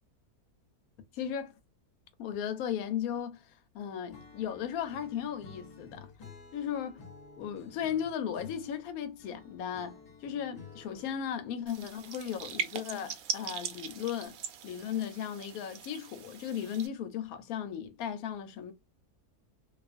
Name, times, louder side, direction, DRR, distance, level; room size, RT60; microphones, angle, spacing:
voice 1, 1.1-1.5 2.2-6.1 6.5-7.0 7.4-14.4 14.6-18.7, left 9 dB, 75° left, 1.0 m, -36 dB
Acoustic guitar / Strum, 4.1-11.3, left 4 dB, 40° left, 0.7 m, -52 dB
sound 1, 11.7-16.9, right 8 dB, 70° right, 1.0 m, -40 dB
2.5 x 2.4 x 2.4 m
omnidirectional pair, 1.6 m